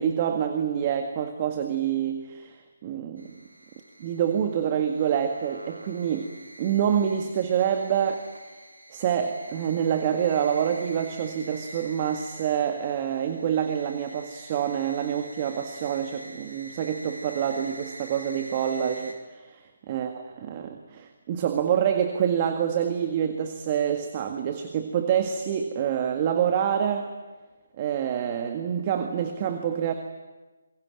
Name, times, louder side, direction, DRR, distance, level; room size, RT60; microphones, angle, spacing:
voice 1, 0.0-3.4 4.0-6.3 6.6-8.3 8.9-19.6 19.9-27.1 27.8-29.9, right 8 dB, 30° right, 6 dB, 1.9 m, -27 dB
sound 1, 3.2-19.1, right 1 dB, 85° right, 4.3 m, -46 dB
28.5 x 22.5 x 9.0 m, 1.2 s
figure-of-eight pair, 150°, 0 cm